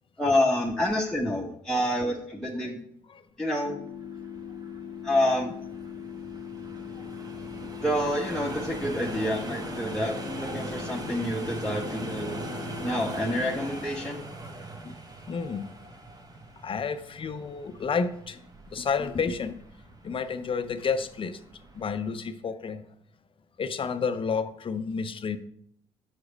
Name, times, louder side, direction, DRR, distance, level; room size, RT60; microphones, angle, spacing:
voice 1, 0.2-2.8 3.4-3.8 5.0-5.5 7.8-12.4 12.8-14.2, left 1 dB, 5° left, 1.0 m, -28 dB
sound 1, 3.6-13.7, left 8 dB, 65° left, 0.8 m, -40 dB
sound 2, 3.9-22.2, right 2 dB, 25° right, 1.1 m, -41 dB
voice 2, 15.3-15.7 16.6-18.4 18.7-19.6 20.0-21.4 21.7-22.8 23.6-25.4, left 5 dB, 35° left, 0.6 m, -30 dB
6.0 x 4.8 x 5.1 m
hypercardioid pair, 55°, 15 cm